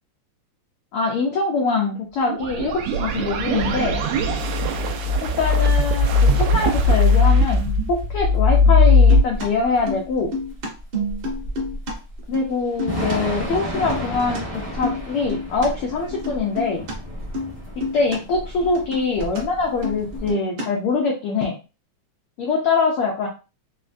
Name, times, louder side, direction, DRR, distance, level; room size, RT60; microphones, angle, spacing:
voice 1, 0.9-4.0 5.2-10.3 12.3-16.9 17.8-21.6 22.4-23.3, left 4 dB, 85° left, -1 dB, 1.2 m, -23 dB
sound 1, 2.3-9.2, left 3 dB, 85° right, 1.3 m, -18 dB
Thunder / Rain, 6.8-20.3, equal, 20° right, 0.6 m, -32 dB
sound 2, 9.1-11.9 12.2-13.2 13.6-14.4 14.7-15.7 16.1-16.9 17.3-17.5 17.8-18.2 18.4-19.4 19.7-20.9, left 1 dB, 55° right, 1.4 m, -29 dB
4.8 x 2.1 x 2.5 m, 0.30 s
omnidirectional pair, 3.3 m